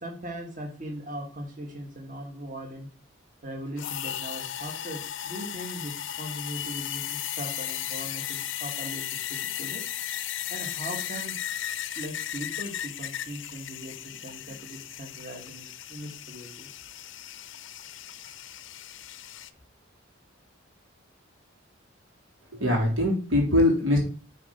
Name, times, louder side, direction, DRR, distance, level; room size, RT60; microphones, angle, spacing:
voice 1, 0.0-2.9 3.4-9.8 10.5-11.4 12.0-16.7, right 1 dB, 40° right, 1 dB, 2.0 m, -39 dB
sound 1, 3.8-19.5, left 11 dB, 65° left, 0.6 m, -36 dB
voice 2, 22.5-24.0, left 1 dB, 80° right, -1 dB, 3.7 m, -22 dB
8.8 x 4.4 x 5.2 m, 0.38 s
head